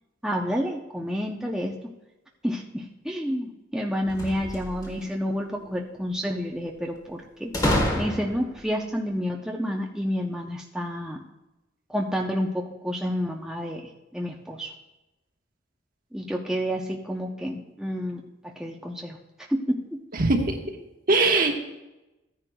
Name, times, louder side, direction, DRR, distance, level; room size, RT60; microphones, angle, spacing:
voice 1, 0.2-1.8 2.4-11.2 11.9-13.8 14.1-14.7 16.1-19.2 19.5-19.8, equal, 5° right, -1 dB, 0.6 m, -29 dB
sound 1, 4.0-5.1 7.5-8.6, left 1 dB, 20° left, 1.3 m, -27 dB
voice 2, 20.1-20.7 21.1-21.6, right 2 dB, 45° right, 3 dB, 1.2 m, -21 dB
15.0 x 9.7 x 2.3 m, 1.0 s
head